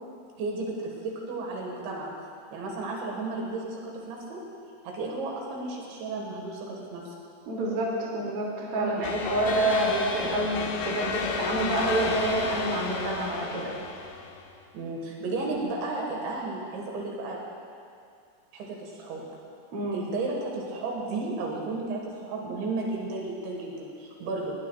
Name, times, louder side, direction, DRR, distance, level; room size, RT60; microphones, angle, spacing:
voice 1, 0.4-2.1 2.5-4.4 4.8-7.1 8.8-9.0 14.7-17.4 18.5-19.2 19.9-24.5, right 3 dB, 70° right, -1 dB, 3.8 m, -33 dB
voice 2, 7.5-13.7 19.7-20.0, right 1 dB, 35° right, -5 dB, 2.8 m, -28 dB
sound 1, 9.0-14.5, left 5 dB, 75° left, 2.4 m, -33 dB
20.5 x 17.0 x 2.4 m, 2.3 s
omnidirectional pair, 5.5 m